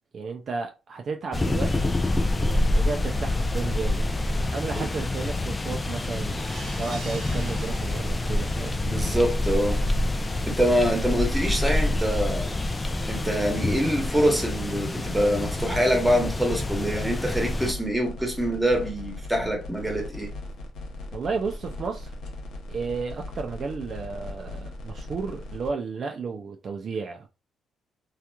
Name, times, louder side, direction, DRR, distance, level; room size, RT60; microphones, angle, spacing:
voice 1, 0.1-2.0 2.7-4.1 4.5-6.4 6.7-8.8 21.1-22.1 22.7-27.3, right 4 dB, 50° right, 0.4 m, -33 dB
sound 1, 1.3-17.7, left 2 dB, 20° left, 0.4 m, -27 dB
sound 2, 6.3-8.6 9.0-9.1 9.5-9.6, right 3 dB, 70° right, 0.8 m, -44 dB
voice 2, 8.8-9.8 10.4-12.6 13.1-20.3, equal, 5° right, 1.1 m, -25 dB
sound 3, 15.4-25.7, left 2 dB, 70° left, 0.7 m, -39 dB
2.9 x 2.3 x 2.2 m
cardioid pair, 90°, 0 cm